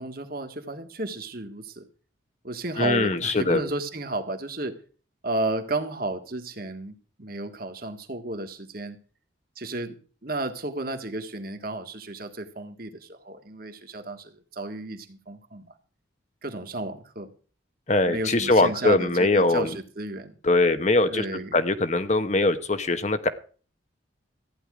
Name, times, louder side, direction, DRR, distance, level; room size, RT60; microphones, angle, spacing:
voice 1, 0.0-1.9 2.4-4.8 5.2-9.0 9.6-10.0 10.2-15.7 16.4-17.3 18.1-20.4 21.1-21.6, right 2 dB, 45° right, 7 dB, 1.8 m, -33 dB
voice 2, 2.8-3.6 17.9-19.7 20.4-21.2 21.5-23.3, left 2 dB, 35° left, 10 dB, 1.0 m, -22 dB
14.5 x 10.0 x 4.9 m, 0.39 s
head